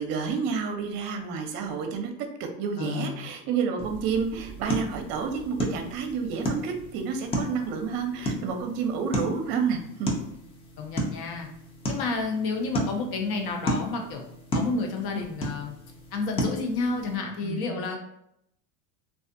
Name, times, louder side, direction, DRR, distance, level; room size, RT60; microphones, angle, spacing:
voice 1, 0.0-2.1 2.4-10.1 17.4-17.9, right 6 dB, 50° right, 4 dB, 0.6 m, -30 dB
voice 2, 2.8-3.3 10.8-11.5 11.9-14.2 14.5-15.7 16.1-18.0, left 3 dB, 50° left, 2 dB, 0.7 m, -30 dB
sound 1, 3.8-17.2, equal, 15° left, 0.3 m, -34 dB
2.4 x 2.4 x 2.5 m, 0.77 s
supercardioid pair, 105°, 47 cm